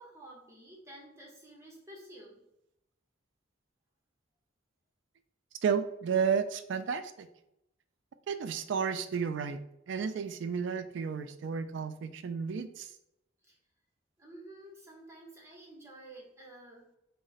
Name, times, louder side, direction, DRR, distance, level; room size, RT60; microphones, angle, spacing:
voice 1, 0.0-2.4 13.4-13.6 14.2-16.9, right 1 dB, 15° right, -2 dB, 0.8 m, -51 dB
voice 2, 5.6-7.3 8.3-9.6 9.9-12.9, right 6 dB, 60° right, 10 dB, 0.3 m, -32 dB
3.9 x 2.1 x 3.9 m, 0.84 s
head